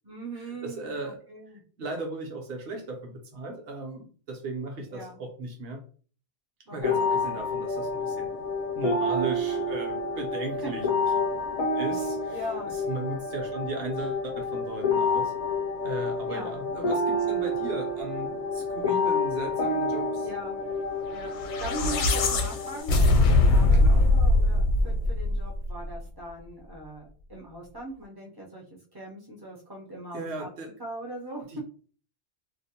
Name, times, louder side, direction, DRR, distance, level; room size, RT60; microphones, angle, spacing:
voice 1, 0.0-1.6 4.9-5.2 6.7-7.4 10.6-10.7 12.3-12.7 16.2-16.5 20.2-20.6 21.1-27.0 27.3-28.6 28.9-30.5 30.8-31.6, right 1 dB, 30° right, -3 dB, 0.4 m, -40 dB
voice 2, 0.6-1.2 1.8-5.8 6.7-8.3 8.7-10.9 11.8-15.3 15.8-20.3 23.7-24.0 30.1-30.7 31.5-31.6, right 2 dB, 60° right, 3 dB, 0.9 m, -37 dB
sound 1, 6.8-22.8, left 2 dB, 55° left, 0.4 m, -29 dB
sound 2, 21.3-25.8, left 2 dB, 80° left, 0.9 m, -21 dB
2.5 x 2.0 x 2.8 m, 0.41 s
omnidirectional pair, 1.2 m